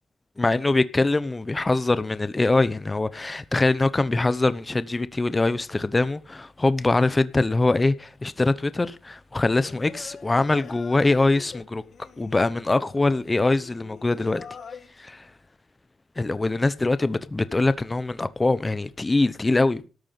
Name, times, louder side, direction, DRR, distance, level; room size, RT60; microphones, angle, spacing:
voice 1, 0.4-11.8 12.2-14.4 16.2-19.9, left 2 dB, 20° left, 0.8 m, -23 dB
Singing, 9.5-14.9, left 6 dB, 60° left, 1.8 m, -44 dB
13.5 x 8.9 x 5.9 m
cardioid pair, 115°, 0 cm